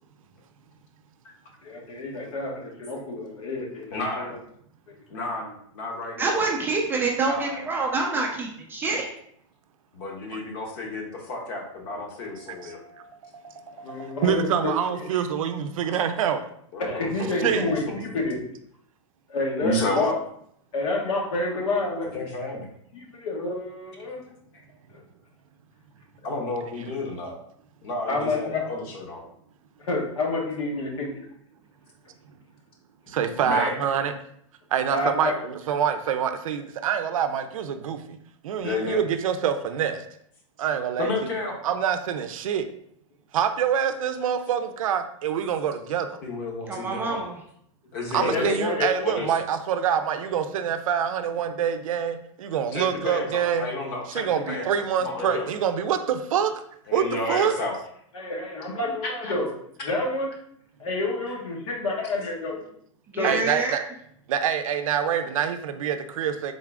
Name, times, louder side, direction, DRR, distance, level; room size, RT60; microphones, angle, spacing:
voice 1, 1.6-4.3 13.8-14.7 16.8-18.4 19.3-20.1 20.7-22.2 22.9-24.2 24.9-25.0 28.1-28.6 29.8-31.1 34.9-35.3 48.1-48.9 58.1-59.5 59.8-60.3 60.8-62.6 63.2-63.3, left 2 dB, 75° left, -1 dB, 1.3 m, -28 dB
voice 2, 3.9-4.4 5.1-6.3 7.2-7.6 9.9-12.8 16.7-16.9 17.2-17.5 19.6-20.1 22.1-22.7 24.5-24.6 26.2-27.4 27.8-29.2 33.3-33.9 38.6-39.0 41.0-41.6 46.2-47.2 47.9-49.3 52.7-54.7 55.0-55.4 56.9-57.7 59.0-59.3 61.3-61.4, left 2 dB, 45° left, 1 dB, 1.0 m, -31 dB
voice 3, 6.2-9.1 46.6-47.4 63.1-63.8, right 3 dB, 10° right, -1 dB, 0.4 m, -26 dB
voice 4, 12.5-16.4 17.4-17.6 33.1-34.1 34.7-38.2 38.4-40.0 40.6-41.3 41.6-42.7 43.3-46.1 48.1-53.7 54.1-56.5 56.9-57.5 63.2-63.8 64.3-66.5, right 8 dB, 85° right, 8 dB, 0.5 m, -26 dB
3.8 x 2.4 x 3.4 m, 0.69 s
supercardioid pair, 150°, 17 cm